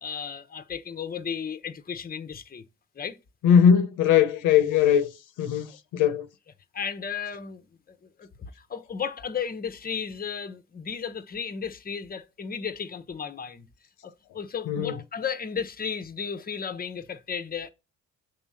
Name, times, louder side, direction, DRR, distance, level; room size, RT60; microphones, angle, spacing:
voice 1, 0.0-2.6 3.0-3.2 6.7-7.6 7.9-13.7 14.0-17.7, left 6 dB, 30° left, 0.8 m, -34 dB
voice 2, 3.4-5.1 5.4-6.3 14.7-14.9, left 8 dB, 90° left, 0.8 m, -20 dB
6.7 x 3.6 x 5.5 m
cardioid pair, 90°, 30 cm